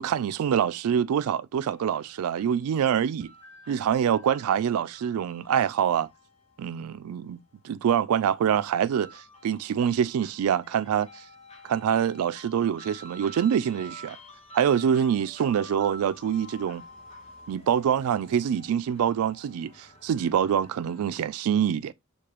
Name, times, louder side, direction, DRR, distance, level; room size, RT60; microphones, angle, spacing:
voice 1, 0.0-3.3 3.7-6.1 6.6-7.4 7.6-11.1 11.6-14.2 14.5-16.8 17.5-21.9, right 8 dB, 75° right, 0.3 m, -25 dB
sound 1, 1.7-21.0, equal, 25° left, 0.9 m, -50 dB
6.6 x 2.2 x 3.0 m
head